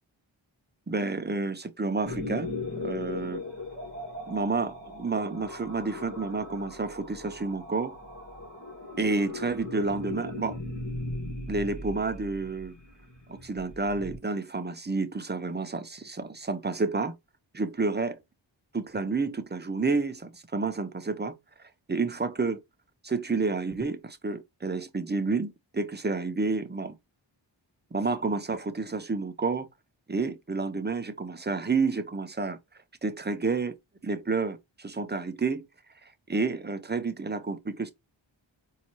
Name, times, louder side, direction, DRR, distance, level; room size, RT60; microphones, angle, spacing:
voice 1, 0.9-2.5 2.8-3.4 4.3-7.9 9.0-10.6 11.5-12.7 13.3-17.1 17.5-18.2 18.7-21.3 21.9-22.6 23.0-26.9 27.9-29.7 30.1-32.6 33.0-33.8 34.0-35.6 36.3-37.9, right 3 dB, 20° right, 0.7 m, -30 dB
sound 1, 2.0-14.2, left 2 dB, 40° left, 2.1 m, -38 dB
4.3 x 2.8 x 3.0 m
wide cardioid pair, 50°, 46 cm